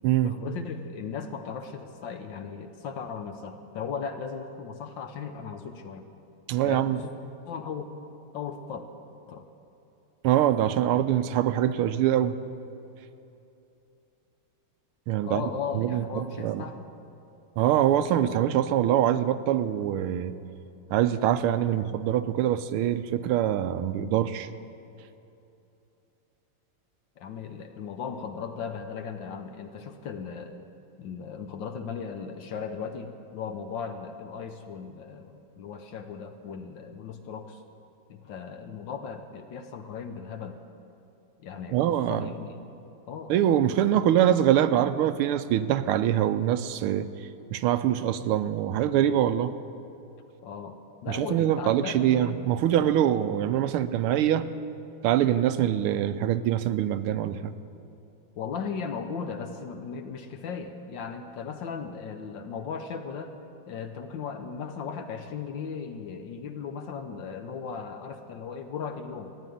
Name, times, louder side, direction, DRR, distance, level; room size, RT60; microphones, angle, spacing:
voice 1, 0.2-6.1 6.6-7.1 7.5-8.0 8.3-8.8 9.3-9.4 15.2-16.9 27.2-30.6 31.0-37.6 38.1-40.6 41.4-42.5 43.1-43.3 50.4-50.8 51.0-52.4 58.3-63.3 63.7-69.3, left 6 dB, 65° left, 7 dB, 1.5 m, -37 dB
voice 2, 6.5-7.0 10.2-12.3 15.1-15.4 15.7-16.6 17.6-20.3 20.9-24.5 41.7-42.3 43.3-47.1 47.5-49.5 51.1-54.5 55.0-57.5, right 11 dB, 85° right, 11 dB, 1.5 m, -24 dB
14.0 x 10.5 x 9.3 m, 2.8 s
omnidirectional pair, 2.4 m